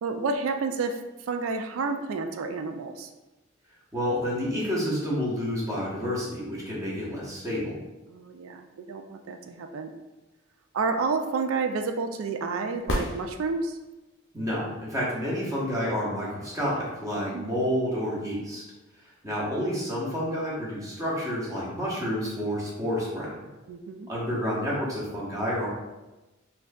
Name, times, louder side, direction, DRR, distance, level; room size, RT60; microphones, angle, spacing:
voice 1, 0.0-3.1 8.1-9.9 10.7-13.8 17.1-17.5 23.7-24.1, right 4 dB, 70° right, 6 dB, 0.3 m, -30 dB
voice 2, 3.9-7.8 14.3-18.6 19.2-23.3 24.1-25.7, equal, 15° right, -6 dB, 1.0 m, -29 dB
sound 1, 12.9-14.0 17.9-18.0, left 1 dB, 70° left, 0.5 m, -31 dB
4.2 x 2.7 x 2.3 m, 1.1 s
head